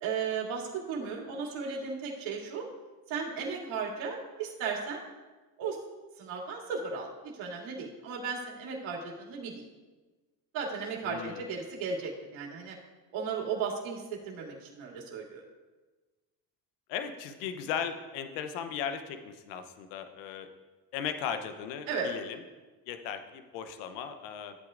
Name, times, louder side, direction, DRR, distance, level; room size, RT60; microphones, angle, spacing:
voice 1, 0.0-2.6 3.1-5.0 5.6-5.8 6.2-9.6 10.5-12.8 13.1-15.4 21.9-22.1, right 5 dB, 70° right, -2 dB, 2.8 m, -35 dB
voice 2, 11.0-11.4 16.9-20.5 20.9-22.4 22.9-24.6, left 8 dB, 80° left, 8 dB, 0.9 m, -37 dB
14.0 x 8.7 x 2.5 m, 1.2 s
supercardioid pair, 80°, 49 cm